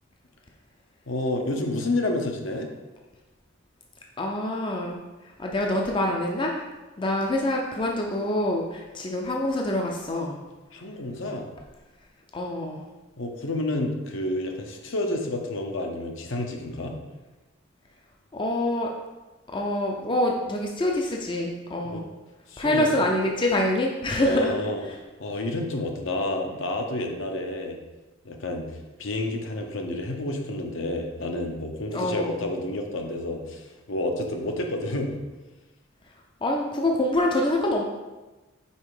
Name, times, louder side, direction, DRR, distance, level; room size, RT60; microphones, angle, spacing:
voice 1, 1.1-2.7 10.7-11.5 13.2-17.0 21.8-22.0 22.5-22.9 24.2-24.8 25.2-27.8 28.2-35.2, left 1 dB, 65° left, 3 dB, 0.8 m, -29 dB
voice 2, 4.2-5.0 5.4-6.6 7.0-10.4 12.3-12.8 18.3-18.9 19.5-22.1 22.6-24.5 24.9-25.0 31.9-32.4 36.4-37.8, left 1 dB, 25° left, 0 dB, 0.5 m, -25 dB
5.5 x 4.3 x 4.8 m, 1.1 s
head